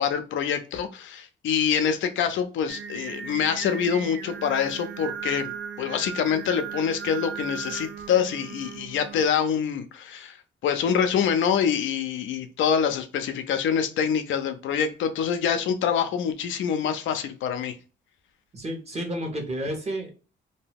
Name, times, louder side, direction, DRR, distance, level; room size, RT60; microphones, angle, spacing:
voice 1, 0.0-5.5 5.8-10.4 10.6-17.7, left 7 dB, 75° left, 8 dB, 0.5 m, -25 dB
Singing, 2.7-9.3, right 7 dB, 70° right, 0.5 m, -37 dB
voice 2, 18.5-20.1, right 1 dB, 35° right, 2 dB, 1.2 m, -31 dB
2.7 x 2.2 x 3.3 m, 0.34 s
cardioid pair, 90°, 20 cm